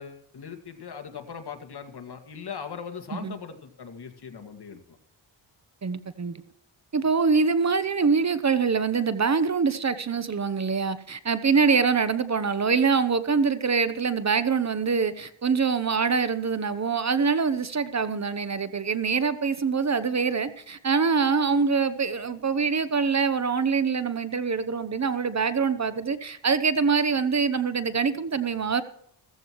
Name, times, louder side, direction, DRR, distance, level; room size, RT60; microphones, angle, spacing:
voice 1, 0.0-4.8, left 6 dB, 55° left, 2.1 m, -39 dB
voice 2, 5.8-6.4 6.9-28.8, right 5 dB, 35° right, 0.9 m, -24 dB
16.0 x 14.5 x 3.1 m
cardioid pair, 80°, 45 cm